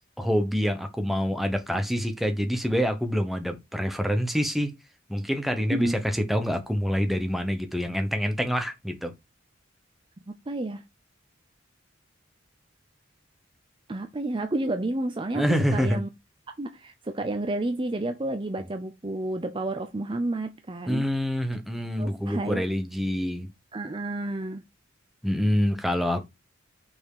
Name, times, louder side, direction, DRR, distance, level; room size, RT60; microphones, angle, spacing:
voice 1, 0.2-4.7 5.1-9.1 15.3-16.0 20.9-23.5 25.2-26.3, equal, ahead, 1.0 m, -26 dB
voice 2, 5.7-6.0 10.3-10.8 13.9-15.5 15.7-16.1 16.6-21.0 22.0-22.6 23.7-24.6, right 2 dB, 25° right, 0.6 m, -30 dB
5.8 x 4.5 x 4.8 m
head